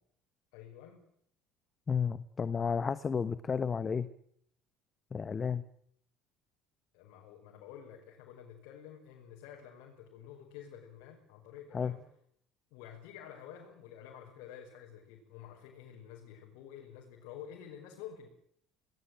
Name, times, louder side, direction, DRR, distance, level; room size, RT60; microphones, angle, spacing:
voice 1, 0.5-1.1 6.9-12.0 12.7-18.3, left 9 dB, 75° left, 1 dB, 5.4 m, -50 dB
voice 2, 1.9-4.1 5.1-5.6 11.7-11.9, left 6 dB, 30° left, 14 dB, 1.1 m, -32 dB
24.0 x 19.5 x 9.1 m, 0.69 s
supercardioid pair, 90°, 0 cm